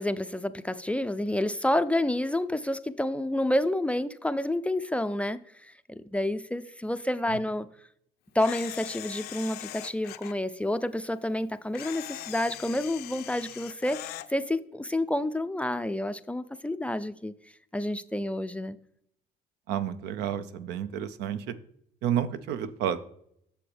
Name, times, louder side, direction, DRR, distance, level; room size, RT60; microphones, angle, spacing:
voice 1, 0.0-7.7 8.3-17.3 17.7-18.8, left 1 dB, 5° left, 11 dB, 0.3 m, -29 dB
Camera, 8.4-10.3 11.7-14.3, left 14 dB, 70° left, 0.5 m, -41 dB
voice 2, 19.7-21.6 22.0-23.0, right 9 dB, 85° right, 12 dB, 0.6 m, -30 dB
8.4 x 6.8 x 3.3 m, 0.70 s
cardioid pair, 110°, 17 cm